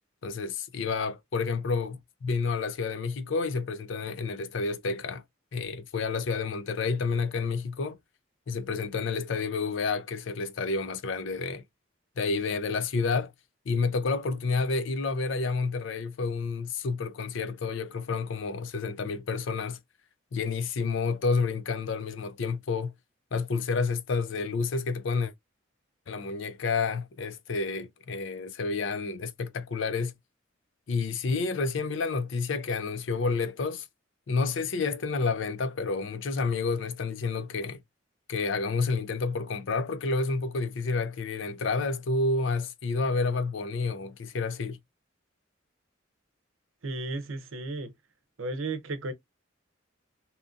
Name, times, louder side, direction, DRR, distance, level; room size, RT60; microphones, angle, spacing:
voice 1, 0.2-5.2 5.5-8.0 8.5-11.6 12.2-13.3 13.7-19.8 20.3-22.9 23.3-25.3 26.1-30.1 30.9-33.9 34.3-37.8 38.3-44.8, left 4 dB, 65° left, 0.4 m, -29 dB
voice 2, 46.8-47.9 48.4-49.1, right 2 dB, 80° right, 0.6 m, -34 dB
2.8 x 2.5 x 2.3 m
head